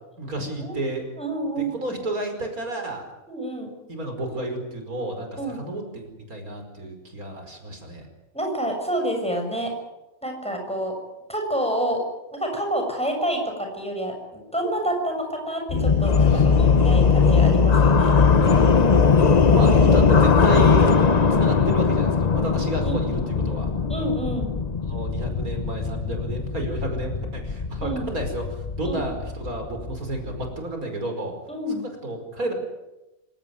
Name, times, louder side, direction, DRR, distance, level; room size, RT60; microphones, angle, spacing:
voice 1, 0.2-1.1 1.7-3.1 3.9-6.0 6.3-8.1 16.3-16.7 19.5-21.0 21.3-23.7 24.8-28.4 28.8-31.3 32.0-32.5, right 1 dB, 80° right, 4 dB, 5.5 m, -31 dB
voice 2, 1.2-1.9 3.3-3.7 5.4-5.6 8.3-9.7 10.2-11.0 11.3-12.0 12.3-16.5 16.8-18.1 22.8-23.0 23.9-24.5 27.8-28.0 28.8-29.0 31.5-31.8, right 1 dB, 5° left, 2 dB, 6.9 m, -28 dB
sound 1, 15.7-30.6, left 5 dB, 30° left, 1.0 m, -20 dB
27.0 x 17.0 x 9.5 m, 0.99 s
omnidirectional pair, 1.5 m